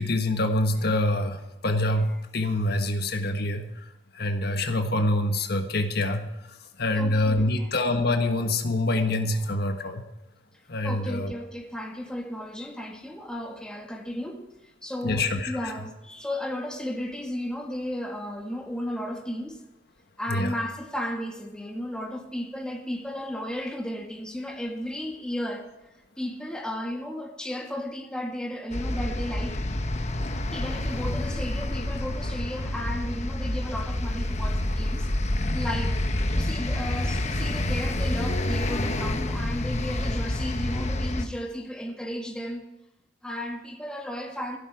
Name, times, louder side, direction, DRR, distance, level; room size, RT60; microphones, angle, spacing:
voice 1, 0.0-1.4 1.6-3.7 4.1-6.3 6.8-10.0 10.7-11.3 15.0-15.5 20.3-20.5, left 1 dB, 60° left, 1.4 m, -25 dB
voice 2, 7.0-7.9 9.4-9.6 10.8-14.4 14.8-19.6 20.2-25.7 26.2-29.6 30.5-35.1 35.5-36.0 36.3-42.6 43.2-44.6, left 1 dB, 5° left, 1.9 m, -34 dB
sound 1, 28.7-41.3, left 1 dB, 40° left, 1.1 m, -28 dB
14.5 x 12.5 x 4.8 m
head